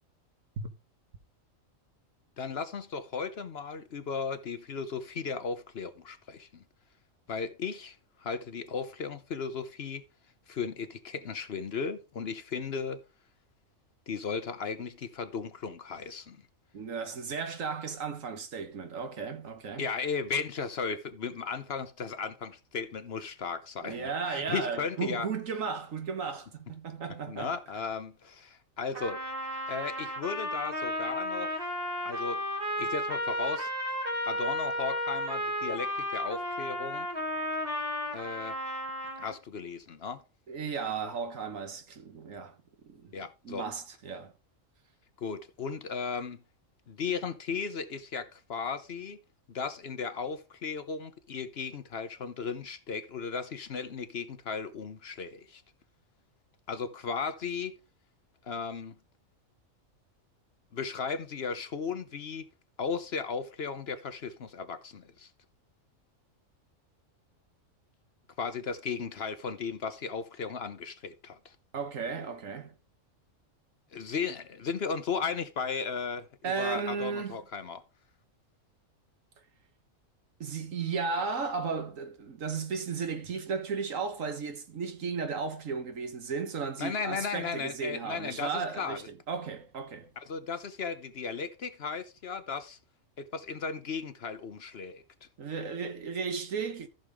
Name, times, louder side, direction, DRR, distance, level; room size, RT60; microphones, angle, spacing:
voice 1, 2.4-6.6 7.3-10.0 10.5-13.0 14.1-16.4 19.8-25.3 27.3-29.2 29.7-31.5 32.0-32.4 32.8-33.7 34.2-37.1 38.1-38.6 39.2-40.2 43.1-43.7 45.2-46.4 46.9-49.2 49.5-55.6 56.7-57.7 58.4-59.0 60.7-62.5 62.8-65.3 68.4-71.6 73.9-77.8 86.8-89.1 90.3-92.8 93.2-95.0, left 5 dB, 55° left, 1.0 m, -36 dB
voice 2, 16.7-19.9 23.8-27.6 40.5-42.5 42.8-43.1 43.4-44.3 71.7-72.7 76.4-77.4 80.4-90.1 95.4-96.9, right 5 dB, 70° right, 1.6 m, -35 dB
Trumpet, 28.9-39.4, left 1 dB, 40° right, 3.3 m, -33 dB
14.5 x 6.5 x 3.6 m
omnidirectional pair, 1.4 m